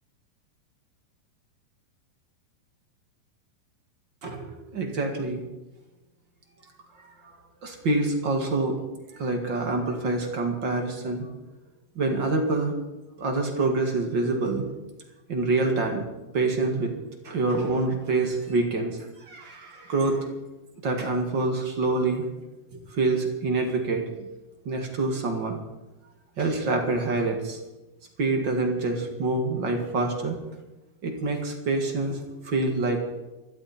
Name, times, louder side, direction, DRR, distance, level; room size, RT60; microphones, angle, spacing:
voice 1, 4.2-5.4 7.6-8.8 9.1-11.3 12.0-12.7 13.2-14.6 15.3-16.0 16.3-16.9 17.2-19.0 19.3-20.3 20.8-22.2 22.9-24.3 24.7-25.6 26.4-27.6 28.2-30.4 31.0-33.0, right 3 dB, 40° right, 3 dB, 2.0 m, -26 dB
25.0 x 12.0 x 4.4 m, 1.0 s
omnidirectional pair, 4.5 m